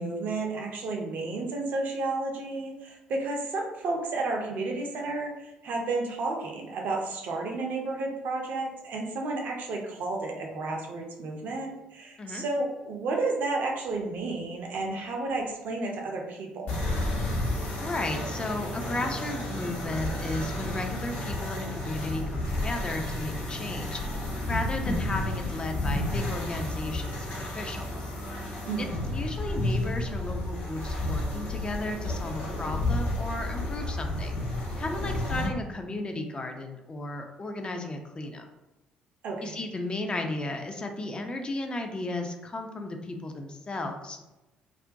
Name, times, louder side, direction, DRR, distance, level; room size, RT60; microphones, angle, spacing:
voice 1, 0.0-16.7 28.7-29.1 39.2-39.5, right 3 dB, 50° right, 1 dB, 0.5 m, -32 dB
sound 1, 16.7-35.5, left 1 dB, 55° left, 0.7 m, -31 dB
voice 2, 17.8-28.1 28.8-28.9 29.1-34.4 34.8-38.5 39.4-44.2, left 2 dB, 25° left, 4 dB, 0.4 m, -34 dB
2.4 x 2.1 x 2.6 m, 1.0 s
figure-of-eight pair, 50°, 4 cm